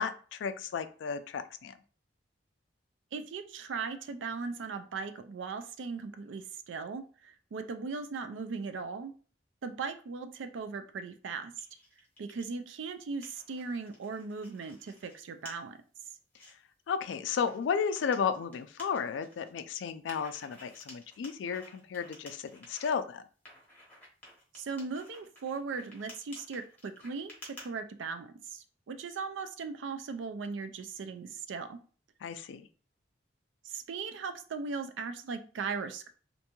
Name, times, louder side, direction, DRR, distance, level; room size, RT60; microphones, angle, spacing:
voice 1, 0.0-1.7 16.9-23.2 32.2-32.7, left 6 dB, 80° left, 11 dB, 0.3 m, -33 dB
voice 2, 3.1-9.1 9.6-11.5 12.2-15.8 24.5-31.8 33.6-36.1, right 4 dB, 85° right, 9 dB, 0.4 m, -38 dB
sound 1, 11.6-12.5 12.9-15.1 15.5-15.6 16.0-16.5 17.3-19.5 20.1-22.9 23.5-27.7, left 1 dB, 10° left, 0.9 m, -53 dB
2.6 x 2.2 x 2.9 m, 0.39 s
head